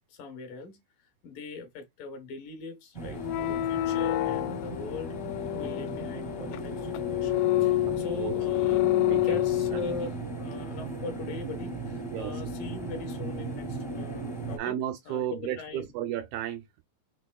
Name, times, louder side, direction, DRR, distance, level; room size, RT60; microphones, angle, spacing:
voice 1, 0.1-0.8 1.2-5.2 5.5-14.8 15.1-15.9, left 4 dB, 65° left, 2.4 m, -41 dB
sound 1, 2.9-14.6, right 3 dB, 15° left, 0.8 m, -37 dB
sound 2, 3.2-10.1, left 16 dB, 85° left, 2.6 m, -28 dB
voice 2, 7.8-8.4 9.1-9.4 9.7-9.8 12.1-12.4 14.6-16.8, right 11 dB, 85° right, 2.1 m, -34 dB
6.3 x 3.5 x 2.2 m
omnidirectional pair, 4.7 m